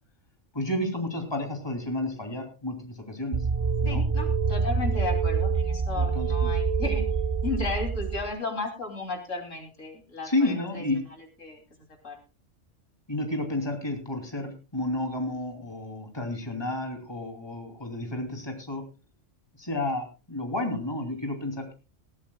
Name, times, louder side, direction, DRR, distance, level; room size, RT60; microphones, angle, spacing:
voice 1, 0.5-3.5 3.8-4.0 5.9-6.6 10.2-11.0 13.1-18.8 19.6-21.7, left 1 dB, 20° left, 4 dB, 2.9 m, -31 dB
sound 1, 3.3-8.3, right 5 dB, 35° right, 0.6 m, -26 dB
voice 2, 3.8-7.0 7.4-10.9 11.4-11.6 12.0-12.2, left 3 dB, 75° left, 4 dB, 3.3 m, -34 dB
20.0 x 14.0 x 2.3 m, 0.30 s
omnidirectional pair, 1.3 m